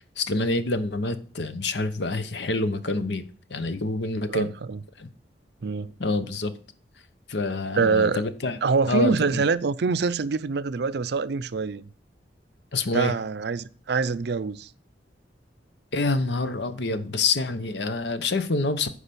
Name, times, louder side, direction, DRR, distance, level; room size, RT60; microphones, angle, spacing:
voice 1, 0.2-4.5 5.0-5.1 6.0-6.5 7.3-8.6 8.9-9.4 12.7-13.1 15.9-18.9, left 2 dB, 70° left, 0.9 m, -27 dB
voice 2, 4.3-4.8 5.6-5.9 7.7-8.2 8.6-11.9 12.9-14.7, right 4 dB, 65° right, 0.5 m, -25 dB
10.0 x 4.9 x 6.8 m
head